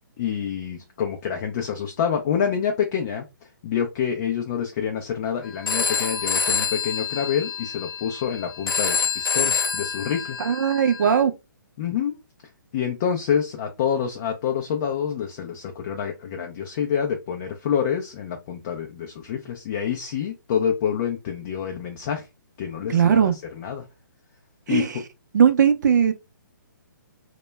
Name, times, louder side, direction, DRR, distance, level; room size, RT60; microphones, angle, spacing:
voice 1, 0.2-3.2 3.6-10.4 11.8-12.2 12.7-22.3 22.6-23.8 24.7-25.0, left 8 dB, 30° left, 0.3 m, -27 dB
Telephone, 5.7-11.2, left 6 dB, 85° left, 0.8 m, -27 dB
voice 2, 10.4-11.3 22.9-23.4 24.7-25.0 25.3-26.1, right 7 dB, 60° right, 0.5 m, -19 dB
2.1 x 2.0 x 3.2 m
hypercardioid pair, 155°, 11 cm